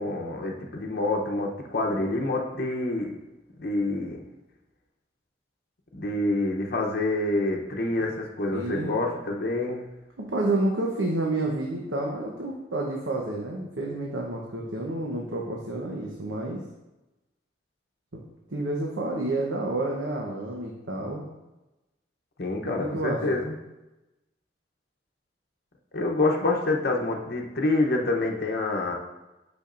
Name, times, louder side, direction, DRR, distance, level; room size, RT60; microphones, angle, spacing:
voice 1, 0.0-3.1 3.6-4.2 5.9-9.9 22.4-23.5 25.9-28.9, left 2 dB, 55° left, 0 dB, 0.8 m, -27 dB
voice 2, 8.5-8.9 10.2-16.6 18.1-18.2 18.5-21.3 22.6-23.3, right 2 dB, 85° right, -2 dB, 0.9 m, -29 dB
8.5 x 6.2 x 2.5 m, 1.0 s
head